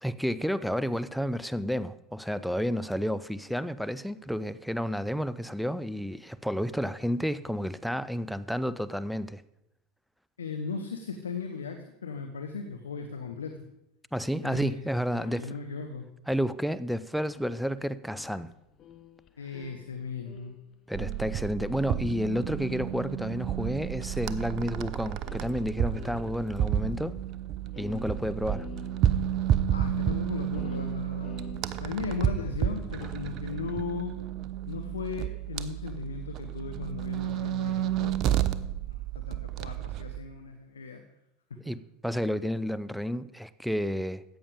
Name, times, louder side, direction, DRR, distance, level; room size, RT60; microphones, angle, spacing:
voice 1, 0.0-9.4 14.1-15.5 16.3-18.5 20.9-27.2 27.8-28.7 41.7-44.2, equal, ahead, 0.5 m, -31 dB
voice 2, 10.4-13.7 14.4-16.1 19.4-20.6 29.7-31.4 31.8-34.2 34.7-38.3 38.5-41.0 41.5-41.8, left 5 dB, 75° left, 0.8 m, -37 dB
sound 1, 15.2-15.5 17.4-21.5 21.7-23.3 24.2-24.3 24.8-24.9 25.2-26.7 27.0-27.1 27.3-27.4 27.7-29.3 30.5-32.3 32.9-33.3, left 7 dB, 35° left, 0.8 m, -48 dB
sound 2, 20.9-40.2, right 10 dB, 45° right, 0.7 m, -31 dB
14.0 x 8.8 x 5.0 m
figure-of-eight pair, 75°, 0 cm